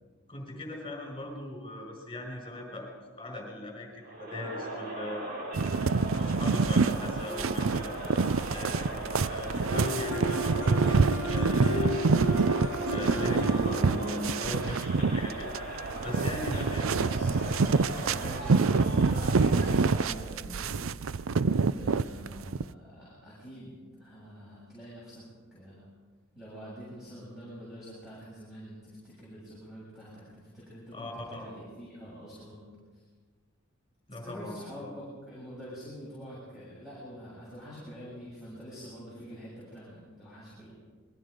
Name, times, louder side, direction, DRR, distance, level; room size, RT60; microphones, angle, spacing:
voice 1, 0.3-2.9 3.2-5.3 6.2-7.9 8.5-11.0 11.3-12.4 12.9-15.5 16.0-17.1 30.9-31.5 34.1-34.6 34.8-34.9, left 1 dB, 25° left, 1 dB, 5.5 m, -39 dB
Crowd, 4.0-20.3, right 1 dB, 50° right, 6.3 m, -38 dB
sound 1, 5.5-22.6, right 4 dB, 70° right, 0.5 m, -27 dB
sound 2, 9.7-15.5, right 1 dB, 85° right, 2.8 m, -34 dB
voice 2, 16.7-20.8 21.4-25.9 26.3-32.7 34.2-40.7, equal, ahead, -8 dB, 7.8 m, -46 dB
28.0 x 22.0 x 5.1 m, 1.4 s
head